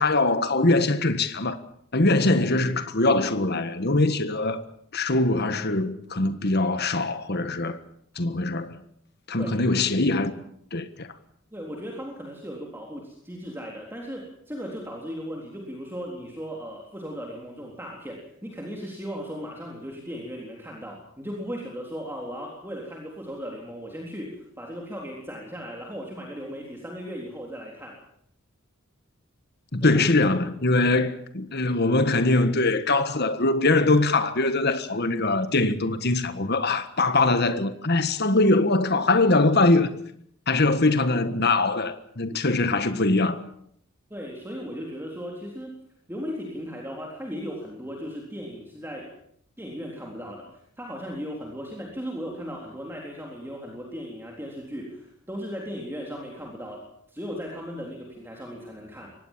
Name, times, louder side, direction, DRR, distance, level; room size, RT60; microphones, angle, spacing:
voice 1, 0.0-1.6 1.9-4.6 4.9-7.8 8.1-8.8 9.3-10.4 10.7-11.1 29.7-39.9 40.5-43.4, left 2 dB, 50° left, 1.6 m, -22 dB
voice 2, 11.5-28.0 29.8-29.9 44.1-45.8 46.1-49.1 49.6-59.2, equal, 10° right, 3.7 m, -37 dB
24.0 x 18.5 x 7.5 m
head